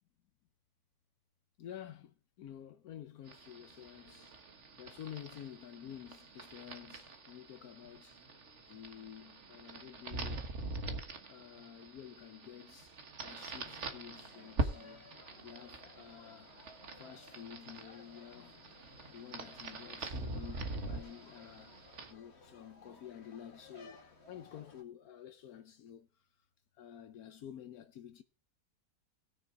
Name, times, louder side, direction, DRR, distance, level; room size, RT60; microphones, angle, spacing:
voice 1, 1.6-4.4 4.8-8.2 8.7-10.5 11.3-15.1 15.4-16.6 17.0-18.8 19.1-21.8 22.1-26.3 26.8-28.2, left 10 dB, 75° left, 1.2 m, -50 dB
sound 1, 3.3-22.1, right 3 dB, 50° right, 1.6 m, -44 dB
sound 2, 13.5-24.8, left 3 dB, 45° left, 2.2 m, -58 dB
17.5 x 6.6 x 4.7 m
omnidirectional pair, 1.6 m